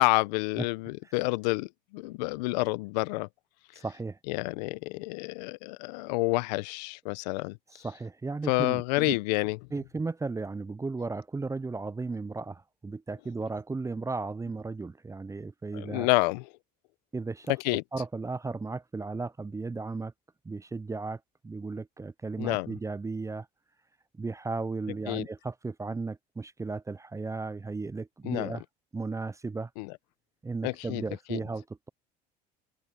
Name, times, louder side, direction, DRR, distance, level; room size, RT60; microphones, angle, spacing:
voice 1, 0.0-3.3 4.3-7.6 8.5-9.6 15.7-16.5 17.6-17.8 22.4-22.7 25.1-25.2 28.2-28.5 29.8-29.9 30.6-31.0 31.3-31.4, left 24 dB, 80° left, 1.0 m, -28 dB
voice 2, 3.8-4.2 7.8-9.2 9.7-16.1 17.1-17.5 17.9-20.1 20.4-23.5 24.1-28.6 28.9-29.7 30.4-31.9, right 3 dB, 15° right, 0.5 m, -35 dB
hypercardioid pair, 70°, 21 cm